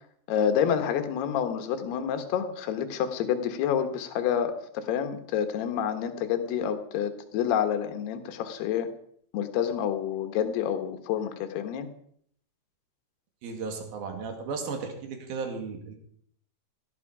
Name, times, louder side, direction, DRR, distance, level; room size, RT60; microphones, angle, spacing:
voice 1, 0.3-8.9 9.3-11.9, left 8 dB, 70° left, 8 dB, 3.1 m, -28 dB
voice 2, 13.4-15.9, right 4 dB, 60° right, 4 dB, 3.8 m, -35 dB
16.5 x 12.0 x 4.9 m, 0.65 s
omnidirectional pair, 5.1 m